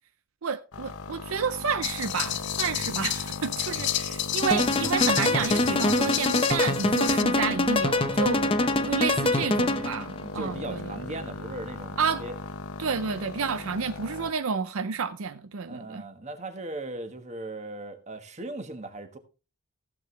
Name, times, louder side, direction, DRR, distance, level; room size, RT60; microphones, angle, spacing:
voice 1, 0.4-8.4 8.9-10.8 12.0-12.2 12.8-16.0, right 6 dB, 75° right, 0.5 m, -30 dB
sound 1, 0.7-14.3, left 3 dB, 85° left, 1.0 m, -39 dB
sound 2, 1.8-7.2, left 12 dB, 55° left, 0.5 m, -31 dB
sound 3, 4.4-10.1, left 2 dB, 25° left, 0.8 m, -24 dB
voice 2, 8.0-8.6 9.1-12.3 15.7-19.2, right 2 dB, 30° right, 1.3 m, -39 dB
14.5 x 7.7 x 3.2 m
head